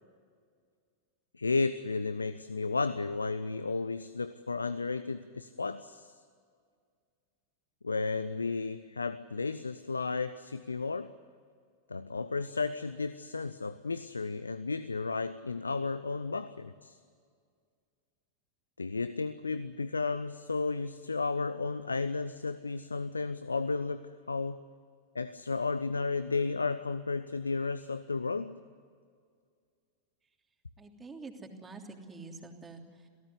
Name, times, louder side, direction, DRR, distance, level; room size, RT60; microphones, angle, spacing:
voice 1, 1.3-6.2 7.8-11.1 11.9-17.0 18.8-24.6 25.1-28.6, left 4 dB, 80° left, 15 dB, 0.7 m, -33 dB
voice 2, 30.8-33.1, right 3 dB, 15° right, 3 dB, 3.2 m, -47 dB
28.0 x 17.5 x 9.7 m, 2.1 s
figure-of-eight pair, 90°, 0 cm